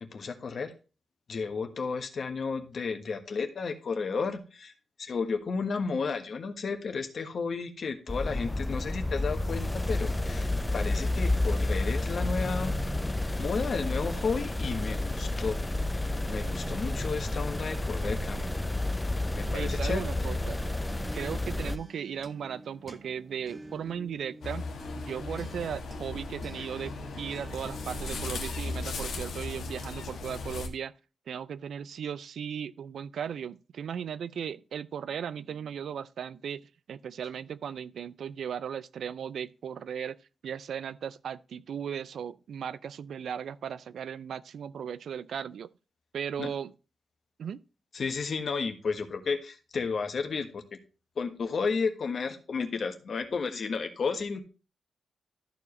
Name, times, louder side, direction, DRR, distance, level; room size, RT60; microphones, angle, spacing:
voice 1, 0.0-0.7 1.3-4.7 5.0-12.8 13.4-15.6 16.3-18.5 19.4-20.1 46.4-46.5 47.9-50.8 51.2-54.4, left 5 dB, 55° left, 1.4 m, -32 dB
sound 1, 8.1-21.8, left 2 dB, 15° left, 0.5 m, -30 dB
voice 2, 19.5-20.6 21.1-24.7 25.0-30.9 31.3-36.6 36.9-40.2 40.4-45.7 46.1-46.7 47.4-47.6, right 8 dB, 85° right, 0.4 m, -37 dB
sound 2, 21.0-30.4, right 2 dB, 30° right, 0.9 m, -48 dB
sound 3, 24.4-30.7, left 3 dB, 90° left, 1.4 m, -37 dB
13.5 x 4.9 x 3.2 m
wide cardioid pair, 110°, 0 cm